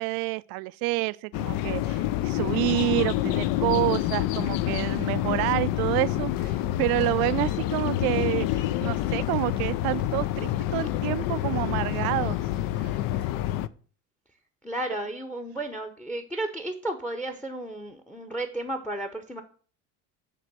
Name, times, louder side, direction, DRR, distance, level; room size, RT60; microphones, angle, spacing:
voice 1, 0.0-12.4 12.8-12.9, right 21 dB, 65° right, 0.5 m, -28 dB
sound 1, 1.3-13.7, left 14 dB, 60° left, 0.5 m, -27 dB
voice 2, 14.6-19.4, right 1 dB, 5° left, 0.8 m, -33 dB
9.2 x 3.3 x 6.1 m
supercardioid pair, 105°, 39 cm